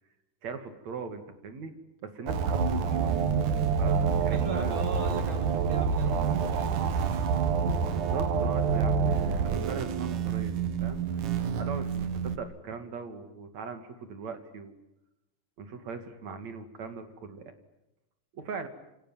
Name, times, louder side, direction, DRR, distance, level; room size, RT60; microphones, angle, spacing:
voice 1, 0.4-1.8 2.0-3.2 3.8-4.9 7.9-11.0 11.6-14.8 15.6-17.4 18.3-18.7, right 5 dB, 65° right, 8 dB, 3.6 m, -40 dB
sound 1, 2.3-12.4, right 6 dB, 90° right, 3.2 m, -27 dB
voice 2, 4.3-6.8, right 3 dB, 40° right, 6 dB, 4.2 m, -39 dB
28.0 x 28.0 x 7.5 m, 0.91 s
omnidirectional pair, 3.5 m